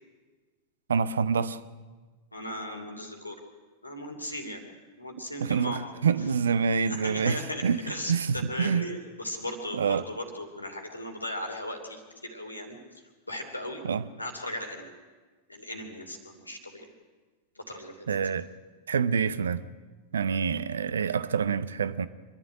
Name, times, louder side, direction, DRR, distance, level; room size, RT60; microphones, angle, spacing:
voice 1, 0.9-1.6 5.4-8.9 9.7-10.1 13.8-14.0 18.1-18.5 18.9-19.6 20.1-22.1, right 6 dB, 70° right, 0.7 m, -27 dB
voice 2, 2.3-3.4 3.8-4.6 5.0-5.8 6.9-12.8 13.3-13.8 14.2-14.9 15.5-16.9 17.6-17.9, left 1 dB, 85° left, 2.9 m, -37 dB
25.0 x 11.0 x 10.0 m
figure-of-eight pair, 90°, 0 cm